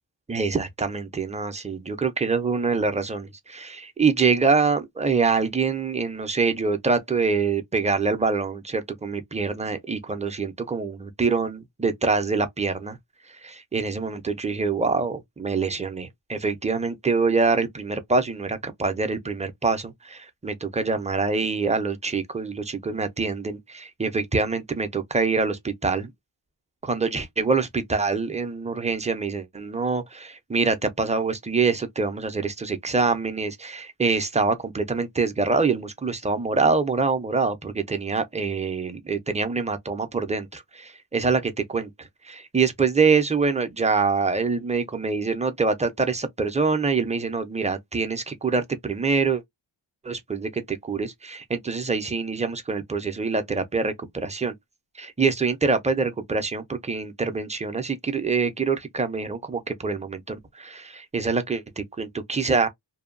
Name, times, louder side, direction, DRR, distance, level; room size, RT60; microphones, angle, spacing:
voice 1, 0.3-13.0 13.4-26.1 26.8-49.4 50.0-54.5 55.0-62.7, right 4 dB, 15° right, 0.5 m, -25 dB
2.7 x 2.2 x 2.5 m
wide cardioid pair, 85°, 47 cm